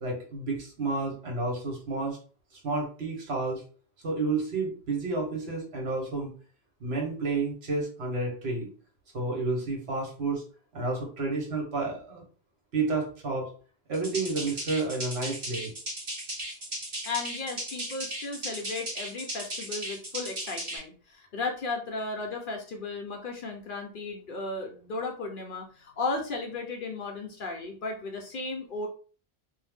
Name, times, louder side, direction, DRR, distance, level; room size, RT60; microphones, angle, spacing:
voice 1, 0.0-2.2 2.6-3.6 4.0-6.3 6.8-8.7 9.1-10.4 10.7-12.2 12.7-13.5 13.9-15.7, right 3 dB, 65° right, -1 dB, 1.3 m, -30 dB
sound 1, 13.9-20.8, right 1 dB, 45° right, 1.1 m, -36 dB
voice 2, 17.0-28.9, left 3 dB, 60° left, 1 dB, 0.7 m, -35 dB
2.6 x 2.1 x 3.3 m, 0.40 s
omnidirectional pair, 1.1 m